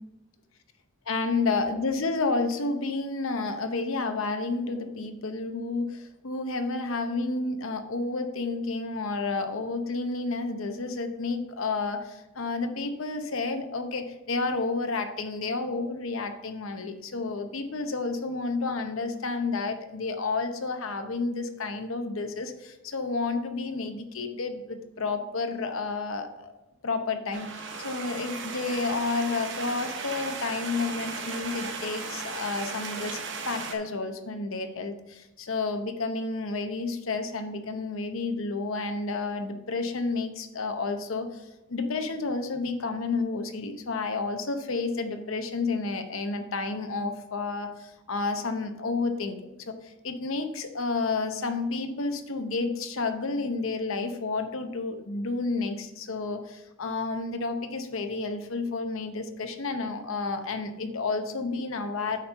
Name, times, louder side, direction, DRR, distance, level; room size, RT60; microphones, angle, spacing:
voice 1, 1.1-26.5 26.8-33.2 33.5-62.2, left 3 dB, 75° left, 7 dB, 0.8 m, -31 dB
sound 1, 27.3-33.7, right 4 dB, 60° right, 1.0 m, -36 dB
8.9 x 4.5 x 5.5 m, 0.99 s
head